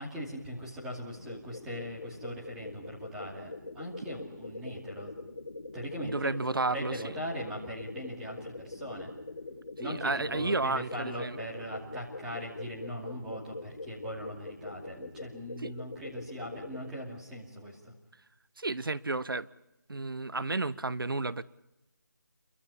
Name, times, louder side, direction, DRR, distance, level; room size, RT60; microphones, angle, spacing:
voice 1, 0.0-5.2 5.7-6.3 6.7-9.1 9.8-17.9, equal, 5° right, 2.5 m, -40 dB
sound 1, 1.1-17.0, left 2 dB, 50° left, 7.2 m, -43 dB
voice 2, 6.0-7.2 9.8-11.4 15.6-15.7 18.6-19.5 19.9-21.4, right 3 dB, 90° right, 1.0 m, -32 dB
29.5 x 24.0 x 5.6 m
figure-of-eight pair, 175°, 11 cm